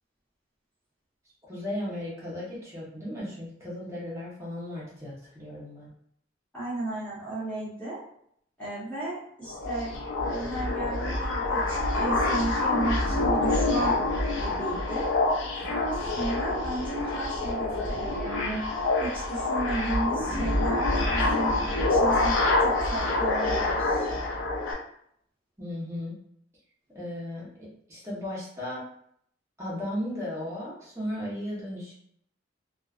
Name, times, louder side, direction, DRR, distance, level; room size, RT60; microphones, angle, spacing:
voice 1, 1.4-5.9 25.6-26.2 26.9-28.8 29.6-31.9, left 1 dB, 15° right, -7 dB, 0.9 m, -36 dB
voice 2, 6.5-8.0 8.6-9.9 10.2-13.9 14.3-15.1 15.7-18.6 19.0-21.6 21.9-24.1, right 2 dB, 5° left, -10 dB, 1.0 m, -34 dB
sound 1, 9.5-24.7, left 2 dB, 85° left, 0.5 m, -26 dB
2.5 x 2.3 x 2.4 m, 0.69 s
head